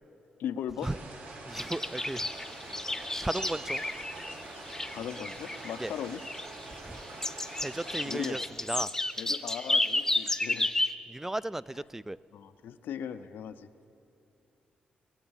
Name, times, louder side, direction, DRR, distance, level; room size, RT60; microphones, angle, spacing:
voice 1, 0.4-0.9 4.9-6.2 8.0-8.4 9.2-10.7 12.3-13.7, left 9 dB, 85° left, 11 dB, 0.6 m, -38 dB
sound 1, 0.8-8.4, right 2 dB, 65° right, 2.8 m, -45 dB
voice 2, 1.5-2.3 3.2-3.8 5.8-5.9 6.9-7.0 7.6-8.4 8.7-8.9 11.1-12.2, right 1 dB, 10° right, 19 dB, 0.3 m, -35 dB
sound 2, 1.6-4.4 4.7-5.9 6.2-7.0 7.2-10.9, left 2 dB, 15° left, 0.7 m, -32 dB
sound 3, 3.3-4.9, right 2 dB, 45° right, 3.1 m, -48 dB
20.5 x 8.0 x 7.1 m, 2.8 s
cardioid pair, 70°, 3 cm